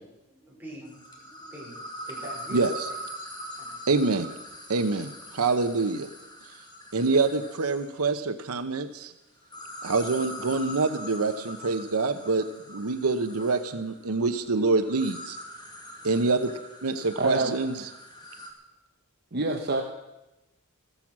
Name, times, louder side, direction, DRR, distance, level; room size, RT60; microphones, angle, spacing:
voice 1, 0.3-3.0 3.6-3.9, right 1 dB, 10° right, -4 dB, 5.1 m, -44 dB
sound 1, 0.9-8.0 9.4-18.5, equal, 20° left, 2.1 m, -42 dB
voice 2, 3.9-4.3 4.7-6.1 6.9-9.1 9.8-15.4 16.0-16.5 16.8-17.7, right 3 dB, 85° right, 9 dB, 0.8 m, -26 dB
voice 3, 17.2-17.5 19.3-19.8, right 2 dB, 50° right, 3 dB, 1.0 m, -26 dB
15.0 x 13.5 x 6.0 m, 0.98 s
head